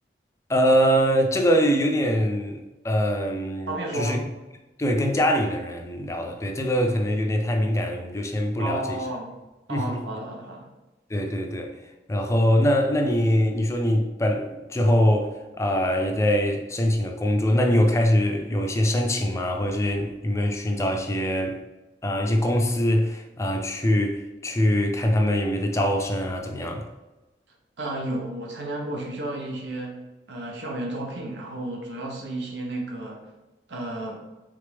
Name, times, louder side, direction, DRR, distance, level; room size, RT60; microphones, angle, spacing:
voice 1, 0.5-4.2 4.8-9.0 9.7-10.0 11.1-11.7 12.1-21.6 22.0-26.9, equal, 15° left, 0.4 m, -23 dB
voice 2, 3.7-4.2 8.6-9.3 9.7-10.7 27.8-30.0 30.3-33.3 33.7-34.2, right 1 dB, 85° right, 0.9 m, -32 dB
3.6 x 3.3 x 3.3 m
head